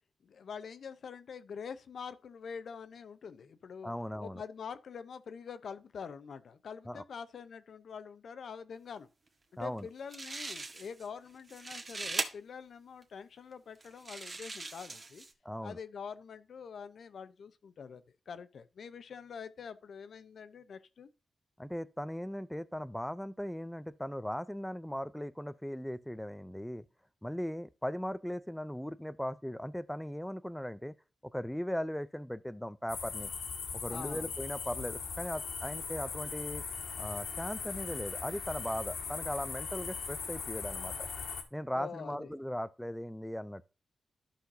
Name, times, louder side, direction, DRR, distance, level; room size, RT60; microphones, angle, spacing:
voice 1, 0.2-3.9 4.2-9.1 9.5-15.2 15.6-21.1 33.9-34.3 41.8-42.3, left 6 dB, 70° left, 0.7 m, -45 dB
voice 2, 3.8-4.4 6.9-7.0 9.6-9.9 15.4-15.8 21.6-26.8 27.2-30.9 31.3-33.3 33.7-36.6 37.0-40.9 41.5-43.7, equal, 5° left, 0.4 m, -38 dB
sound 1, 9.8-9.9 10.1-11.1 11.4-12.3 13.0-13.1 13.8-15.3, right 3 dB, 35° right, 1.4 m, -39 dB
sound 2, 32.9-41.4, left 5 dB, 85° left, 2.0 m, -39 dB
13.0 x 5.8 x 2.7 m
wide cardioid pair, 110°, 0 cm